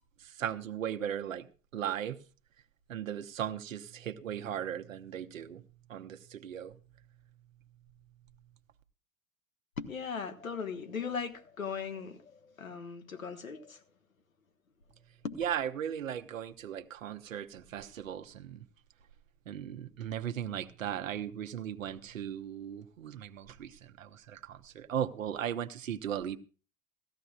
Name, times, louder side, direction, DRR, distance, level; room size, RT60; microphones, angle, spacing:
voice 1, 0.4-1.5 1.7-2.2 2.9-5.6 5.9-6.7 15.4-18.6 19.5-26.4, right 9 dB, 75° right, 1.0 m, -37 dB
voice 2, 9.8-13.8 15.2-15.4, left 6 dB, 85° left, 1.3 m, -38 dB
17.5 x 14.0 x 2.4 m
figure-of-eight pair, 80°, 40 cm